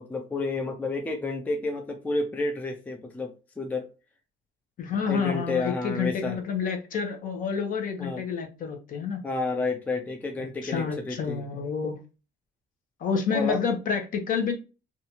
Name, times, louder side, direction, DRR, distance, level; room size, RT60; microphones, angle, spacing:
voice 1, 0.0-3.9 5.1-6.4 8.0-8.2 9.2-11.4 13.3-13.6, left 3 dB, 10° left, 0.4 m, -30 dB
voice 2, 4.8-9.2 10.6-12.0 13.0-14.5, left 6 dB, 45° left, 0.7 m, -29 dB
2.7 x 2.3 x 2.8 m
cardioid pair, 140°, 19 cm